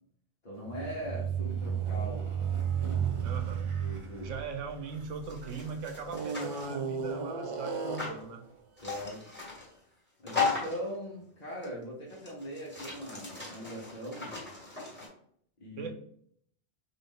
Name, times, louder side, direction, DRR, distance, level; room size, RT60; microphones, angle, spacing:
voice 1, 0.4-2.2 2.8-3.1 3.8-4.3 8.8-9.2 10.2-14.3 15.6-15.9, equal, 40° left, -6 dB, 0.9 m, -40 dB
sound 1, 0.6-5.5 6.1-8.3, right 7 dB, 45° right, 0.4 m, -33 dB
voice 2, 3.2-3.7 4.2-8.4 15.8-15.9, right 5 dB, 85° right, 5 dB, 1.0 m, -40 dB
sound 2, 5.2-6.7 8.0-8.2 8.8-9.7 10.3-10.9 11.6-11.7 12.1-15.1, left 5 dB, 10° left, 1.5 m, -36 dB
3.7 x 2.6 x 3.7 m, 0.64 s
omnidirectional pair, 1.2 m